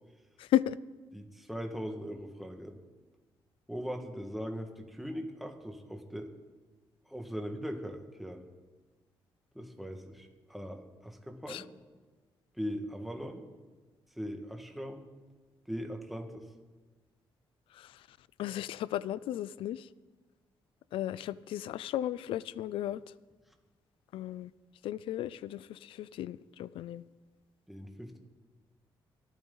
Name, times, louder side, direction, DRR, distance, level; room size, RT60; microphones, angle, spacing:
voice 1, 0.4-0.8 11.5-11.6 17.7-18.0 18.4-19.9 20.9-23.0 24.1-24.5 24.8-27.0, left 12 dB, 85° left, 0.4 m, -34 dB
voice 2, 1.1-2.8 3.7-6.3 7.1-8.4 9.6-11.7 12.6-13.4 14.2-15.0 15.7-16.5 27.7-28.2, equal, ahead, 1.8 m, -40 dB
26.0 x 9.3 x 4.0 m
cardioid pair, 95°, 9 cm